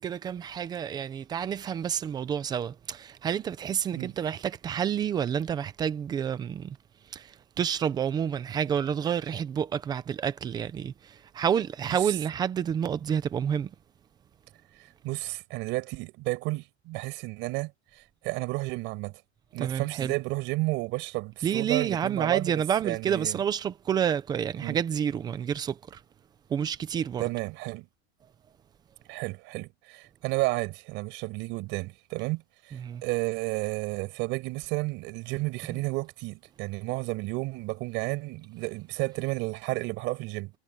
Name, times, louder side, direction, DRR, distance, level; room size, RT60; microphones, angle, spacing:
voice 1, 0.0-6.8 7.1-7.3 7.6-10.9 11.3-13.7 19.6-20.1 21.4-26.0 26.5-27.2 32.7-33.0 35.7-35.8, right 8 dB, 10° right, 0.6 m, -29 dB
voice 2, 15.0-17.7 18.2-19.1 19.5-23.4 24.6-24.8 27.2-27.9 29.1-40.5, right 22 dB, 35° right, 5.3 m, -32 dB
supercardioid pair, 170°, 33 cm